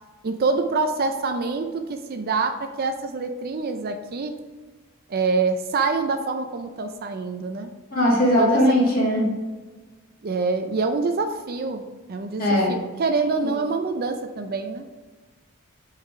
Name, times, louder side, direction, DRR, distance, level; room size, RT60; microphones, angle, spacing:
voice 1, 0.2-4.4 5.1-7.7 8.4-8.6 10.2-15.0, right 4 dB, 45° right, 7 dB, 0.4 m, -26 dB
voice 2, 7.9-9.3 12.4-12.7, equal, 45° left, -5 dB, 1.8 m, -19 dB
5.7 x 4.8 x 4.8 m, 1.3 s
head